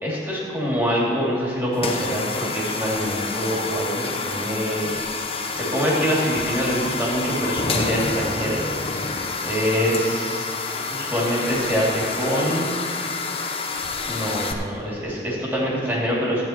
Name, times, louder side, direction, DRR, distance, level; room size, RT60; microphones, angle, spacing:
voice 1, 0.0-4.9 5.5-8.6 9.4-12.7 14.1-16.5, equal, 15° right, -5 dB, 2.6 m, -25 dB
sound 1, 1.7-14.5, left 4 dB, 35° left, 0.9 m, -28 dB
14.0 x 9.0 x 4.5 m, 2.3 s
head